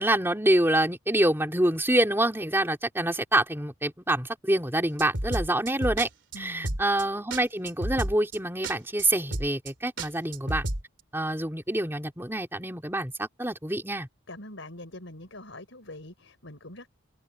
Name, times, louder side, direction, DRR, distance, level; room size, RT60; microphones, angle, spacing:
voice 1, 0.0-6.1 6.4-10.6 11.1-14.1, right 1 dB, 10° right, 3.9 m, -26 dB
sound 1, 5.0-6.1 6.3-6.4 6.6-7.0 7.3-7.4 7.7-8.4 8.6-8.7 9.0-9.1 9.3-9.7 10.0-10.8, right 1 dB, 60° right, 3.2 m, -31 dB
voice 2, 6.3-6.8 14.3-16.9, left 1 dB, 65° left, 5.2 m, -43 dB
open air
head